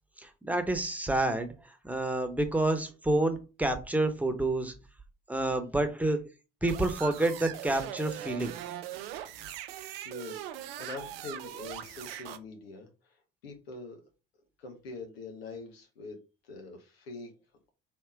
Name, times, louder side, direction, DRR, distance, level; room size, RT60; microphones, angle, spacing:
voice 1, 0.2-1.5 1.8-4.7 5.3-6.2 6.6-8.6, right 2 dB, 5° right, 7 dB, 1.0 m, -28 dB
sound 1, 6.6-12.4, right 12 dB, 80° right, 0.5 m, -41 dB
voice 2, 10.0-13.2 13.4-14.0 14.6-16.2 16.5-17.3, left 3 dB, 90° left, 3 dB, 1.0 m, -44 dB
3.5 x 2.9 x 4.7 m, 0.31 s
hypercardioid pair, 60°, 29 cm